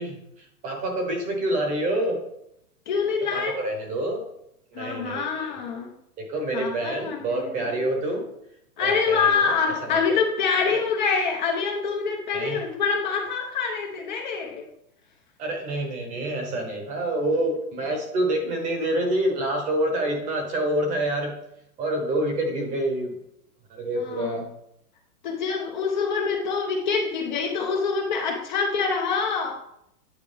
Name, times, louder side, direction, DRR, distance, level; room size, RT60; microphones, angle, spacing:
voice 1, 0.0-2.2 3.3-4.2 4.7-5.5 6.2-8.3 8.8-9.5 9.8-10.0 10.6-10.8 12.3-12.6 15.4-21.3 21.8-23.1 23.7-24.4, right 1 dB, 15° right, 2 dB, 1.0 m, -27 dB
voice 2, 2.9-3.5 4.7-5.9 6.5-7.5 8.8-14.6 23.9-24.4 25.2-29.5, left 5 dB, 30° left, 2 dB, 0.7 m, -25 dB
8.9 x 4.8 x 3.4 m, 0.77 s
hypercardioid pair, 160°, 46 cm